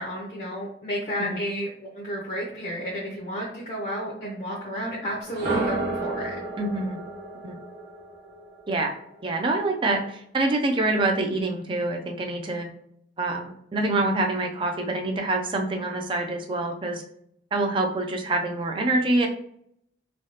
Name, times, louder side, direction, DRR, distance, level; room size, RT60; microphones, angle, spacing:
voice 1, 0.0-1.7 1.9-6.3, equal, 45° left, -5 dB, 0.7 m, -32 dB
sound 1, 5.2-9.2, right 2 dB, 60° right, 1.1 m, -31 dB
voice 2, 6.6-7.0 7.4-7.6 8.7-8.9 9.2-12.7 13.2-17.0 17.5-19.3, right 2 dB, 30° right, 3 dB, 0.4 m, -26 dB
3.2 x 2.3 x 2.8 m, 0.70 s
head